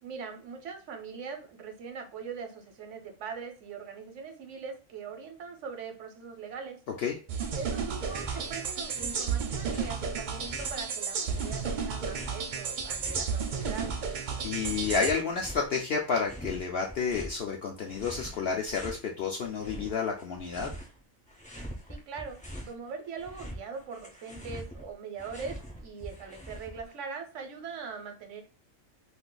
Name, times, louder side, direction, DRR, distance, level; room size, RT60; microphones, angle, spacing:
voice 1, 0.0-6.8 7.5-13.9 21.9-22.4 22.7-28.4, right 5 dB, 65° right, 4 dB, 0.9 m, -41 dB
sound 1, 7.3-15.1, right 6 dB, 80° right, 0.4 m, -33 dB
sound 2, 8.0-8.5 8.8-10.9 11.3-14.0 14.3-15.8 16.2-17.4 17.8-19.0 19.4-21.0 21.3-22.8 23.1-26.9, equal, 10° left, 0.3 m, -43 dB
voice 2, 14.4-20.7, left 5 dB, 65° left, 1 dB, 0.6 m, -30 dB
2.6 x 2.4 x 3.7 m, 0.35 s
omnidirectional pair, 1.4 m